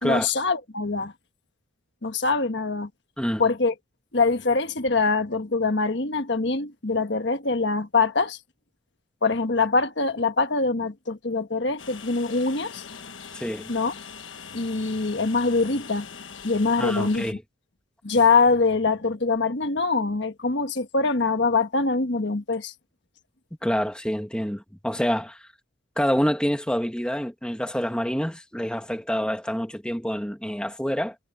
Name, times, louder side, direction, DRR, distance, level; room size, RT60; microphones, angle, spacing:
voice 1, 0.0-1.1 2.0-2.9 3.4-3.7 4.1-8.4 9.2-12.8 13.7-13.9 14.5-16.1 16.4-17.3 18.0-22.7, left 4 dB, 60° left, 1.4 m, -23 dB
Train, 11.8-17.3, left 6 dB, 75° left, 1.3 m, -42 dB
voice 2, 13.3-13.7 16.8-17.4 23.6-25.5 26.0-31.2, equal, 5° left, 1.8 m, -27 dB
head